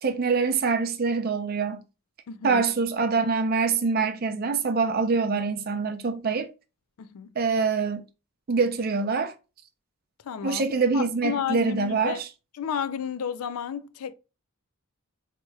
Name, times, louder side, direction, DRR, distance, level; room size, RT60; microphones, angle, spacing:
voice 1, 0.0-1.8 2.4-6.5 7.4-8.0 8.5-9.3 10.4-12.3, right 4 dB, 45° right, 0.5 m, -25 dB
voice 2, 2.3-2.6 7.0-7.3 10.2-10.6 10.9-12.2 12.6-14.1, left 8 dB, 80° left, 0.4 m, -32 dB
4.5 x 2.8 x 2.2 m
head